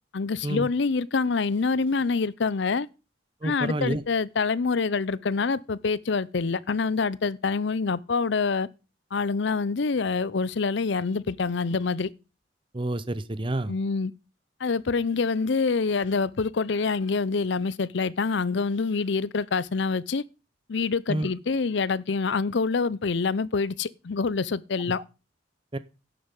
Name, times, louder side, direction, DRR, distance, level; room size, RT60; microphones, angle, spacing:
voice 1, 0.1-2.9 3.4-8.7 9.1-12.1 13.7-14.1 14.6-20.2 20.7-25.0, left 4 dB, 60° left, 0.5 m, -26 dB
voice 2, 3.4-4.0 12.7-13.7 21.1-21.3 25.7-25.8, right 1 dB, 25° right, 0.7 m, -28 dB
11.0 x 7.9 x 5.3 m
head